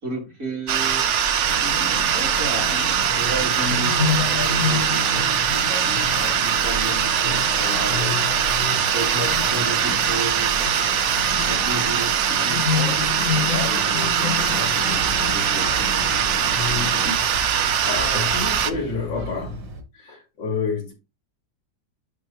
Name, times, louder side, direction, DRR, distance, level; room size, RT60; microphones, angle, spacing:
voice 1, 0.0-1.1 2.1-2.8 3.2-8.2 8.9-10.7 11.5-15.9, right 1 dB, 45° right, 3.8 m, -32 dB
sound 1, 0.7-18.7, right 8 dB, 65° right, 0.7 m, -22 dB
sound 2, 1.4-17.1, left 6 dB, 45° left, 1.7 m, -30 dB
sound 3, 14.4-19.8, right 3 dB, 80° right, 2.2 m, -36 dB
voice 2, 17.8-19.6 19.9-20.9, left 5 dB, 85° left, 3.8 m, -28 dB
11.0 x 4.1 x 3.1 m
omnidirectional pair, 1.9 m